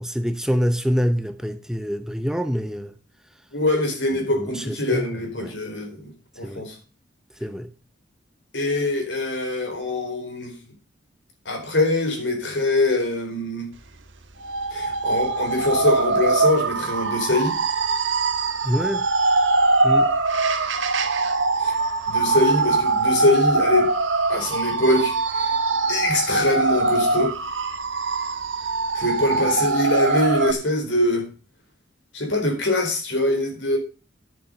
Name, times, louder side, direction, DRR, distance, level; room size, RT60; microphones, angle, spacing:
voice 1, 0.0-2.9 4.4-5.1 5.4-5.5 6.4-6.7 7.4-7.7 18.6-19.0 19.8-20.1, equal, 5° right, 0.7 m, -25 dB
voice 2, 3.5-6.8 8.5-10.5 11.4-13.7 14.7-17.6 21.6-21.8 22.1-23.9 24.3-25.5 25.9-27.3 28.9-31.3 32.1-33.8, left 1 dB, 75° left, 4.4 m, -23 dB
sound 1, 14.4-30.5, right 3 dB, 85° right, 1.3 m, -22 dB
10.5 x 7.2 x 6.8 m
head